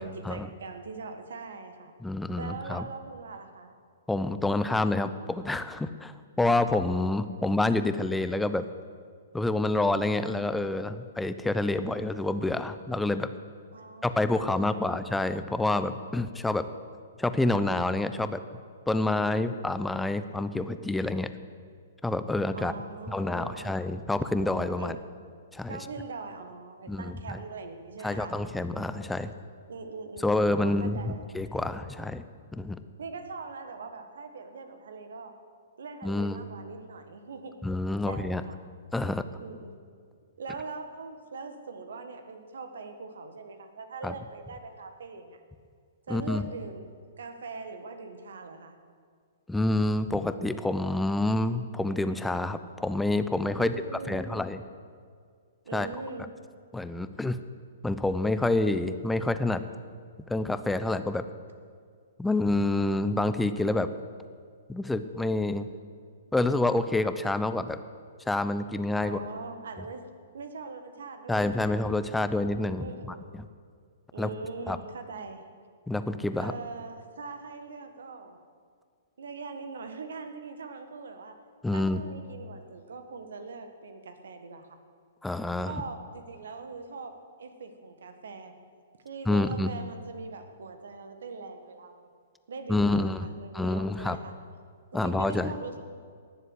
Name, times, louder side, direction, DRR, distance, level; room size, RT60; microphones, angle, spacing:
voice 1, 0.0-1.9 2.4-3.7 10.0-10.7 13.7-14.9 22.5-23.7 24.8-25.0 25.7-28.3 29.7-31.2 33.0-35.3 35.8-37.6 38.1-38.6 39.4-39.7 40.4-45.4 46.1-48.7 53.6-54.4 55.6-56.4 69.0-71.8 72.8-73.3 74.1-75.4 76.4-78.4 79.2-81.4 81.7-84.8 85.6-88.5 89.0-92.1 92.5-94.3 94.9-95.8, right 4 dB, 70° right, 7 dB, 1.7 m, -42 dB
voice 2, 2.0-2.8 4.1-8.7 9.3-13.3 14.0-16.7 17.2-18.4 18.9-21.3 22.0-22.7 23.1-25.0 25.5-25.8 26.9-27.4 28.0-29.3 30.2-32.2 32.5-32.8 36.0-36.4 37.6-38.4 38.9-39.2 44.0-44.1 46.1-46.4 49.5-53.7 54.1-54.6 55.7-55.9 56.7-57.4 57.8-59.6 60.3-61.3 62.2-63.9 64.7-65.7 66.3-67.8 68.3-69.2 71.3-73.1 74.2-74.3 74.7-74.8 75.9-76.5 81.6-82.0 85.2-85.7 89.3-89.7 92.7-93.2 93.5-94.2 94.9-95.5, left 2 dB, 5° left, 11 dB, 0.7 m, -28 dB
18.5 x 7.5 x 8.0 m, 2.1 s
figure-of-eight pair, 115°, 0 cm